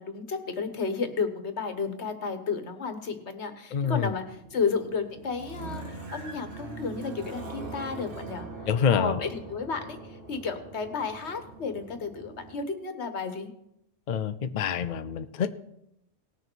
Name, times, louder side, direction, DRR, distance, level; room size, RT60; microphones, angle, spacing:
voice 1, 0.0-8.5 8.9-10.0 10.3-13.5, left 5 dB, 80° left, 8 dB, 1.5 m, -32 dB
voice 2, 3.7-4.1 8.7-9.2 14.1-15.6, left 7 dB, 50° left, 10 dB, 0.6 m, -26 dB
sound 1, 4.0-12.6, right 3 dB, 55° right, 1.7 m, -42 dB
18.5 x 6.7 x 4.5 m, 0.80 s
omnidirectional pair, 1.1 m